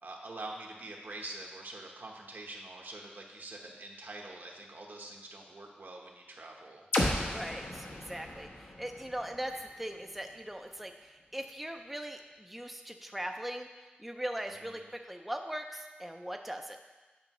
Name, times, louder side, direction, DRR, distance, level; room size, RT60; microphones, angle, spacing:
voice 1, 0.0-6.9 14.6-14.8, right 2 dB, 65° right, 0 dB, 1.0 m, -45 dB
sound 1, 6.9-10.8, left 1 dB, 85° left, 1.0 m, -36 dB
voice 2, 7.3-13.7 14.0-16.8, right 1 dB, 5° right, 4 dB, 0.4 m, -40 dB
9.5 x 5.4 x 3.0 m, 1.2 s
wide cardioid pair, 90°, 4 cm